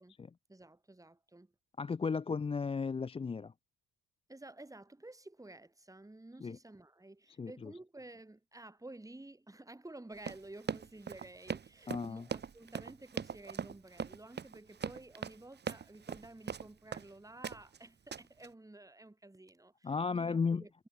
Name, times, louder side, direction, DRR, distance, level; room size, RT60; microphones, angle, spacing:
voice 1, 0.5-1.5 4.3-20.9, right 2 dB, 10° right, 3.5 m, -52 dB
voice 2, 1.8-3.5 6.4-6.6 7.4-7.7 11.9-12.3 19.8-20.6, left 5 dB, 15° left, 0.4 m, -34 dB
Run, 10.2-17.1 17.4-17.8 18.1-18.5, right 7 dB, 30° right, 0.8 m, -40 dB
cardioid pair, 110°, 34 cm